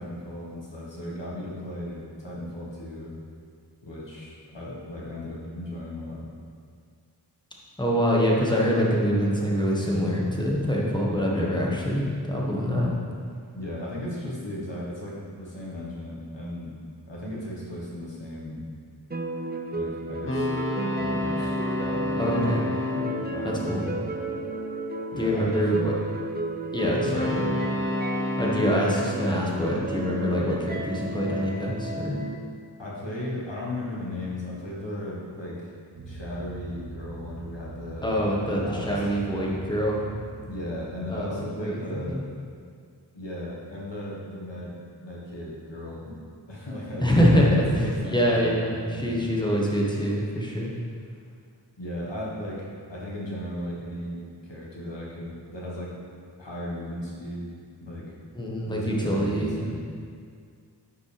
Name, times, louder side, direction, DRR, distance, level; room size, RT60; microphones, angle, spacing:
voice 1, 0.0-3.2 3.8-6.3 13.5-16.7 17.1-18.6 19.7-20.5 20.9-22.2 23.3-24.0 25.1-25.6 26.9-27.6 32.8-35.7 36.0-38.9 40.5-42.2 43.1-46.2 46.5-47.1 47.3-49.1 51.8-56.0 56.4-57.5 57.8-58.3 58.6-59.8, left 1 dB, 85° left, -5 dB, 1.7 m, -36 dB
voice 2, 7.8-12.9 22.1-22.6 23.4-23.8 25.2-25.9 26.7-27.3 28.4-32.2 38.0-40.0 41.1-41.8 42.1-42.2 47.0-50.7 58.3-59.8, equal, 10° left, -4 dB, 1.4 m, -25 dB
sound 1, 19.1-32.3, right 1 dB, 25° right, 0.5 m, -32 dB
sound 2, 20.3-24.7 27.0-30.3, left 2 dB, 30° left, 1.2 m, -31 dB
sound 3, 35.9-41.3, right 3 dB, 80° right, 0.9 m, -42 dB
10.0 x 5.1 x 3.4 m, 2.2 s
wide cardioid pair, 40°, 42 cm